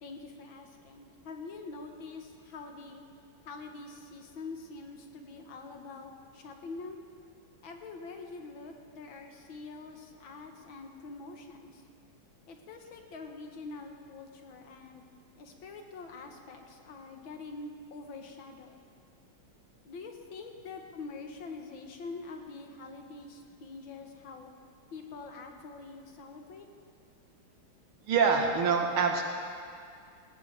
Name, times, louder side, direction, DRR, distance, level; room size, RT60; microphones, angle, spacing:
voice 1, 0.0-3.0 3.5-7.0 7.6-11.7 12.5-15.0 15.4-18.8 19.9-24.5 24.9-26.7, left 3 dB, 70° left, 4 dB, 1.9 m, -45 dB
voice 2, 28.1-29.2, right 5 dB, 80° right, 2 dB, 2.3 m, -25 dB
19.0 x 17.0 x 3.4 m, 2.2 s
omnidirectional pair, 2.3 m